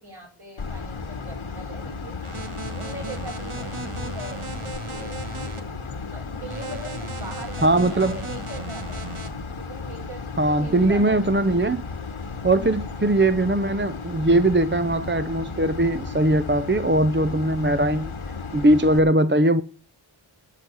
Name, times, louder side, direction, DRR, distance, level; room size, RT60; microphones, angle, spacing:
voice 1, 0.0-2.2 2.7-5.8 6.0-9.0 9.6-11.3 11.7-11.8 12.5-12.8, right 1 dB, 50° right, 7.7 m, -41 dB
sound 1, 0.6-19.0, left 4 dB, 80° left, 1.3 m, -34 dB
sound 2, 2.2-5.6 6.5-9.3, right 3 dB, 85° right, 1.7 m, -36 dB
voice 2, 7.6-8.2 10.4-11.8 12.4-18.1 18.5-19.6, right 1 dB, 25° right, 0.6 m, -20 dB
12.5 x 5.6 x 8.3 m
wide cardioid pair, 45°, 49 cm